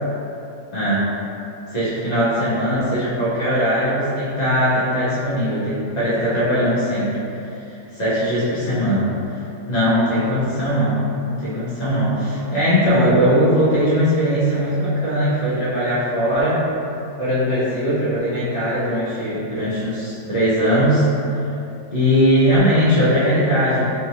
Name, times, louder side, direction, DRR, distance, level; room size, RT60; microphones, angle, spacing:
voice 1, 0.7-1.0 1.7-7.2 7.5-9.4 9.7-16.6 17.2-21.1 21.4-21.5 21.9-23.9, equal, 30° left, -11 dB, 1.0 m, -20 dB
3.7 x 2.6 x 3.0 m, 2.8 s
omnidirectional pair, 1.8 m